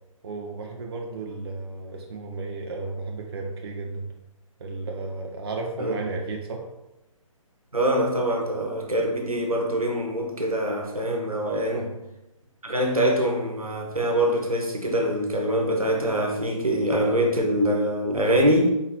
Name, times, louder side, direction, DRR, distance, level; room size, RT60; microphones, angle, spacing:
voice 1, 0.2-4.1 4.6-6.7 11.7-11.9, right 3 dB, 45° right, 1 dB, 0.7 m, -33 dB
voice 2, 7.7-11.9 12.6-18.7, right 1 dB, 85° right, 1 dB, 1.1 m, -24 dB
4.5 x 3.7 x 2.9 m, 0.91 s
figure-of-eight pair, 135°, 18 cm